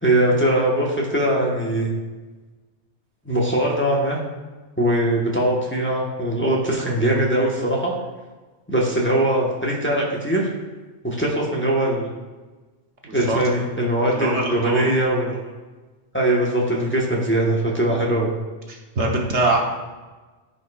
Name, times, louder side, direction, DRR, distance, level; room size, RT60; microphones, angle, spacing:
voice 1, 0.0-1.9 3.2-4.2 4.8-7.9 8.7-10.5 11.0-12.1 13.1-15.4 16.1-18.3, right 1 dB, 10° left, -4 dB, 1.2 m, -21 dB
voice 2, 13.0-13.4 14.1-14.9 18.7-19.6, right 2 dB, 65° right, 0 dB, 1.3 m, -23 dB
14.0 x 5.3 x 2.4 m, 1.3 s
omnidirectional pair, 1.3 m